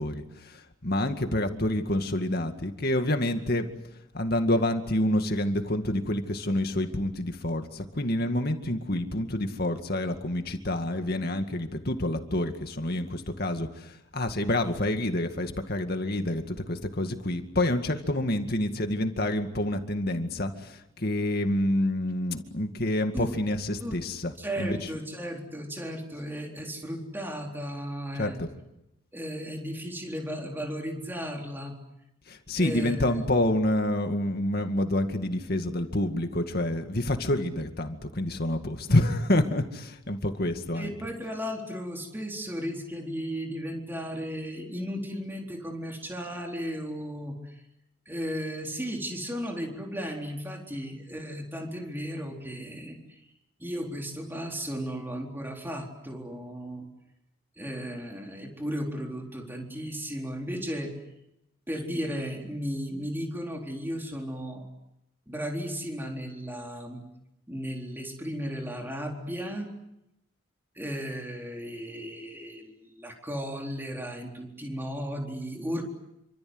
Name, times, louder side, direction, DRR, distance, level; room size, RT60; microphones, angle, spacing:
voice 1, 0.0-3.7 4.1-24.3 24.6-24.8 28.2-28.5 32.3-40.9, left 1 dB, 50° left, 6 dB, 2.2 m, -28 dB
voice 2, 24.4-28.4 29.1-31.7 32.6-33.0 40.8-47.6 48.1-53.3 53.6-56.9 57.6-60.9 61.7-64.7 65.3-67.0 67.5-69.7 70.7-75.8, equal, 10° right, 1 dB, 4.0 m, -35 dB
28.0 x 25.5 x 8.0 m, 0.86 s
head